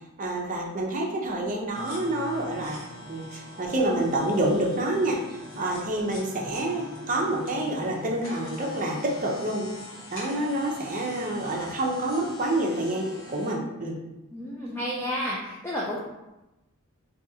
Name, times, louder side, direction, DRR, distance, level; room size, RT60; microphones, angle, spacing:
voice 1, 0.2-2.8 3.1-9.7 10.1-14.0, right 1 dB, 40° right, -1 dB, 0.6 m, -28 dB
sound 1, 1.7-13.5, left 1 dB, 65° left, 1.0 m, -43 dB
voice 2, 14.3-16.0, equal, 10° left, -5 dB, 0.4 m, -31 dB
3.5 x 2.7 x 2.7 m, 1.0 s
head